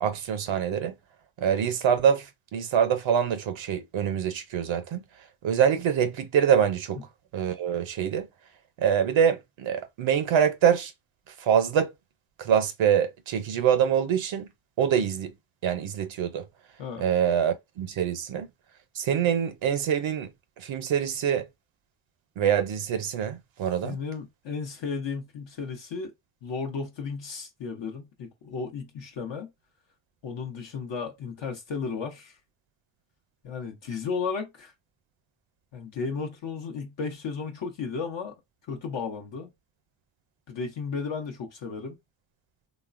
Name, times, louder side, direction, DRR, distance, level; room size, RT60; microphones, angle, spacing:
voice 1, 0.0-1.0 1.4-5.0 5.4-7.0 7.3-8.3 8.8-10.9 11.3-11.9 12.4-14.5 14.8-15.3 15.6-16.5 17.0-18.5 18.9-20.3 20.6-21.5 22.4-24.0, right 8 dB, 70° right, 0.6 m, -25 dB
voice 2, 23.8-26.1 26.4-29.5 30.2-32.4 33.4-34.7 35.7-38.3 38.7-39.5 40.5-42.0, left 5 dB, 60° left, 0.8 m, -34 dB
3.1 x 2.1 x 2.4 m
cardioid pair, 65°, 49 cm